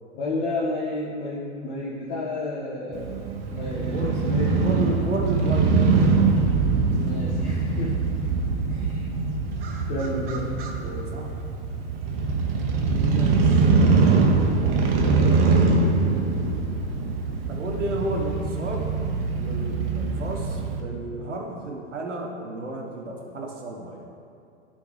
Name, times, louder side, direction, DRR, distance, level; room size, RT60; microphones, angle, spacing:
voice 1, 0.1-4.6 7.0-8.1 8.7-9.1 9.9-10.5, left 2 dB, 40° left, -6 dB, 1.3 m, -31 dB
Crow / Motorcycle, 2.9-20.8, right 4 dB, 55° right, 1.0 m, -23 dB
voice 2, 3.9-4.2 4.6-5.9 10.8-11.3 12.9-13.7 15.0-16.1 17.5-18.9 19.3-24.1, right 2 dB, 85° right, 1 dB, 1.1 m, -33 dB
11.5 x 4.4 x 3.1 m, 2.4 s
hypercardioid pair, 105°, 35 cm